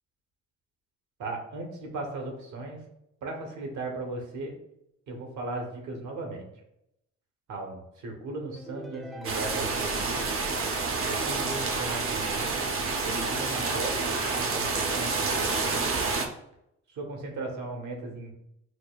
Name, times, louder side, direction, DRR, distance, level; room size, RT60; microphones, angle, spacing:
voice 1, 1.2-2.8 3.2-4.5 5.1-6.5 7.5-10.3 11.0-12.5 13.0-15.9 16.9-18.3, right 2 dB, 75° right, 2 dB, 1.1 m, -37 dB
sound 1, 8.6-10.0, equal, ahead, 0.3 m, -45 dB
sound 2, 9.2-16.3, right 4 dB, 45° right, 0.6 m, -28 dB
6.3 x 2.1 x 2.3 m, 0.82 s
cardioid pair, 90°, 30 cm